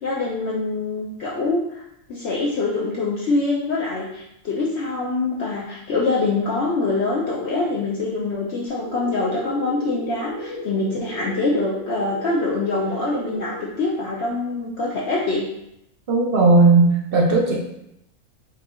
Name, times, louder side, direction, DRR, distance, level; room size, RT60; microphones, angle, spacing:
voice 1, 0.0-1.8 2.1-15.5, left 3 dB, 60° left, -5 dB, 0.8 m, -24 dB
sound 1, 8.7-13.7, equal, 10° right, 0.7 m, -35 dB
voice 2, 16.1-17.6, right 3 dB, 60° right, -1 dB, 0.6 m, -16 dB
4.8 x 2.7 x 2.4 m, 0.82 s
omnidirectional pair, 1.5 m